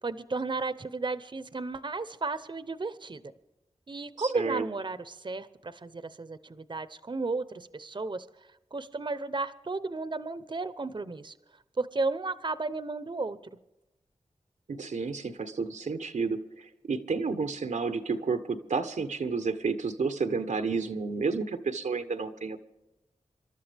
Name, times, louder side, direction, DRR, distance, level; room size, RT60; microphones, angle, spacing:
voice 1, 0.0-3.3 3.9-8.3 8.7-11.4 11.8-13.4, right 3 dB, 40° right, 13 dB, 0.8 m, -33 dB
voice 2, 4.2-4.6 14.7-22.6, right 4 dB, 85° right, 8 dB, 1.0 m, -31 dB
26.5 x 12.0 x 3.5 m, 0.95 s
cardioid pair, 45°, 12 cm